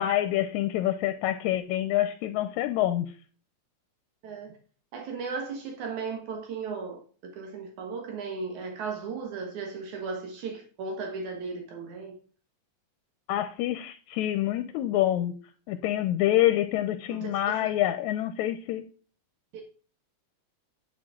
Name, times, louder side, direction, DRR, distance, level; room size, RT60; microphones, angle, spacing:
voice 1, 0.0-3.1 13.3-15.3 15.7-18.9, left 13 dB, 80° left, 1.9 m, -26 dB
voice 2, 4.9-12.2 17.1-17.7 19.5-19.6, right 4 dB, 75° right, 2.8 m, -36 dB
10.5 x 6.4 x 3.7 m
omnidirectional pair, 3.4 m